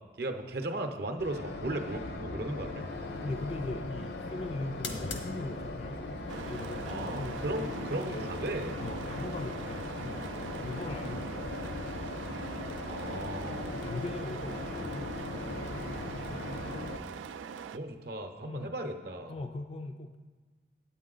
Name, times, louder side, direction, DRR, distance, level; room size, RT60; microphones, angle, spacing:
voice 1, 0.2-2.9 6.9-8.8 12.8-13.8 16.7-17.2 17.7-19.3, right 1 dB, 55° right, 5 dB, 0.7 m, -37 dB
sound 1, 1.2-17.0, left 2 dB, 60° left, 0.7 m, -39 dB
sound 2, 3.0-18.3, left 2 dB, 80° left, 1.0 m, -49 dB
voice 2, 3.2-8.3 8.8-10.3 10.6-12.1 13.4-15.3 15.7-16.0 18.4-18.8 19.3-20.2, left 2 dB, 30° left, 6 dB, 0.3 m, -40 dB
sound 3, 6.3-17.8, right 7 dB, 90° right, 0.3 m, -43 dB
8.9 x 8.4 x 3.8 m, 1.4 s
head